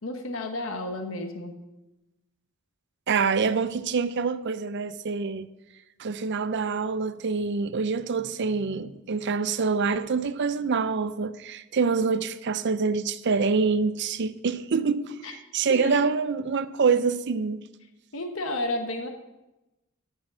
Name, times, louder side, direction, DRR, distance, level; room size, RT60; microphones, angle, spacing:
voice 1, 0.0-1.5 15.2-15.3 15.7-16.1 18.1-19.1, left 1 dB, 70° left, 1.2 m, -32 dB
voice 2, 3.1-5.5 6.0-17.6, right 5 dB, 55° right, 0.5 m, -26 dB
13.0 x 6.2 x 6.3 m
head